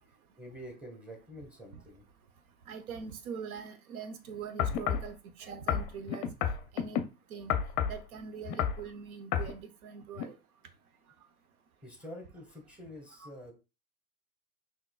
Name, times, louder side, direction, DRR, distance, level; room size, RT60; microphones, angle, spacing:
voice 1, 0.4-2.0 11.8-13.5, equal, 5° right, 1.4 m, -47 dB
voice 2, 2.7-6.3 6.7-7.0 7.3-7.5 7.9-10.4 13.2-13.3, right 6 dB, 70° right, 0.9 m, -43 dB
sound 1, 4.6-5.1 5.7-7.0 7.5-8.0 8.5-8.8 9.3-9.5 10.2-10.3, left 9 dB, 35° left, 0.6 m, -30 dB
5.7 x 3.0 x 2.3 m
hypercardioid pair, 105°, 45 cm